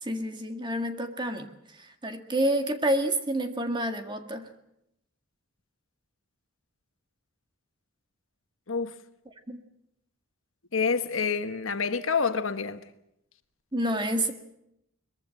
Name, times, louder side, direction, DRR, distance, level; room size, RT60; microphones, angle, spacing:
voice 1, 0.0-4.5 9.5-9.6 13.7-14.3, right 1 dB, 20° right, 1.8 m, -29 dB
voice 2, 10.7-12.8, left 5 dB, 70° left, 1.3 m, -27 dB
22.5 x 21.5 x 7.6 m
head